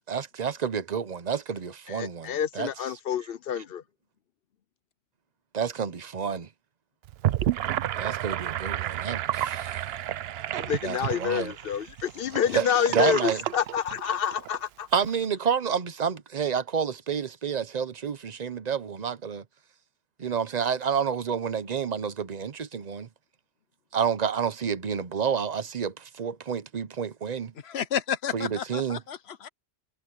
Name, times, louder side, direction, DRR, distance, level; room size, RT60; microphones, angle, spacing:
voice 1, 0.1-2.7 5.5-6.5 8.0-9.9 10.8-11.5 12.5-12.7 12.9-13.4 14.9-19.4 20.2-23.1 23.9-27.5 28.3-29.0, right 7 dB, 45° right, 0.9 m, -29 dB
voice 2, 1.9-3.8 10.5-14.9, left 8 dB, 65° left, 0.9 m, -28 dB
Gurgling / Sink (filling or washing), 7.0-14.6, right 12 dB, 80° right, 0.8 m, -31 dB
voice 3, 27.7-29.5, left 8 dB, 85° left, 1.1 m, -31 dB
omnidirectional pair, 1.0 m